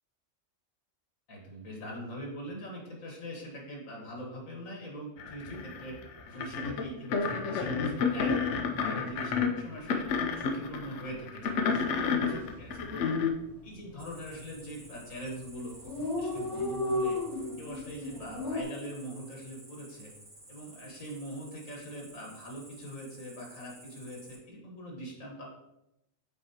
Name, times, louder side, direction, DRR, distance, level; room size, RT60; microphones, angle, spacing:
voice 1, 1.3-6.0 6.2-10.1 10.3-13.1 13.6-17.2 17.6-20.1 20.5-25.4, equal, 85° left, -1 dB, 1.8 m, -42 dB
sound 1, 5.2-13.3, left 5 dB, 70° left, 0.9 m, -30 dB
Dog, 12.4-12.7 13.0-13.1 13.3-14.0 14.6-14.9 15.2-15.3 15.4-15.5 15.7-18.6, left 2 dB, ahead, 1.9 m, -33 dB
Cricket, 14.0-24.3, right 2 dB, 75° right, 2.4 m, -53 dB
7.9 x 4.4 x 2.8 m, 0.88 s
omnidirectional pair, 1.4 m